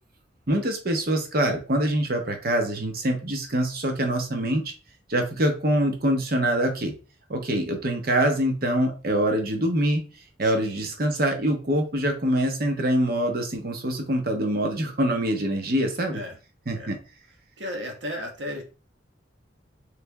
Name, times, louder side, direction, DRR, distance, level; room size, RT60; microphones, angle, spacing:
voice 1, 0.5-4.6 5.1-6.9 7.3-10.0 10.4-16.2 16.7-17.0, right 1 dB, 55° right, 4 dB, 1.0 m, -24 dB
voice 2, 10.4-10.9 16.1-16.4 16.7-16.9 17.6-18.6, left 1 dB, 75° right, 1 dB, 1.2 m, -35 dB
3.4 x 3.3 x 3.4 m, 0.33 s
head